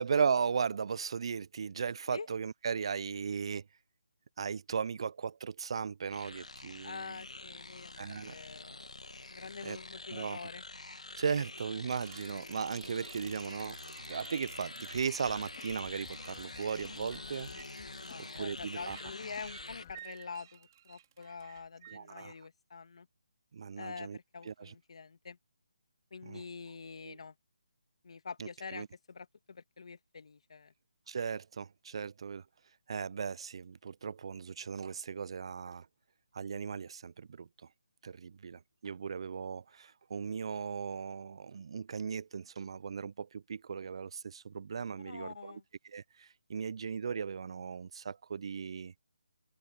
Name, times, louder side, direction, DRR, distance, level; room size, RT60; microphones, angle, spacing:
voice 1, 0.0-3.6 4.4-7.0 8.0-8.3 9.6-9.8 10.1-10.4 11.2-13.8 14.1-17.5 18.3-19.0 21.9-22.3 23.5-24.2 24.5-24.7 26.2-26.4 27.1-27.2 28.4-28.9 31.1-32.4 32.9-35.9 36.3-37.5 38.0-48.9, right 6 dB, 50° right, 0.7 m, -37 dB
sound 1, 6.1-19.8, left 2 dB, 85° left, 2.1 m, -47 dB
voice 2, 6.8-8.8 9.3-10.6 18.0-23.1 23.8-25.4 26.1-27.3 28.0-30.7 45.0-45.6, left 5 dB, 60° left, 2.7 m, -46 dB
sound 2, 11.9-22.0, right 11 dB, 35° right, 5.9 m, -55 dB
sound 3, 14.9-20.0, left 11 dB, 35° left, 2.3 m, -55 dB
figure-of-eight pair, 155°, 4 cm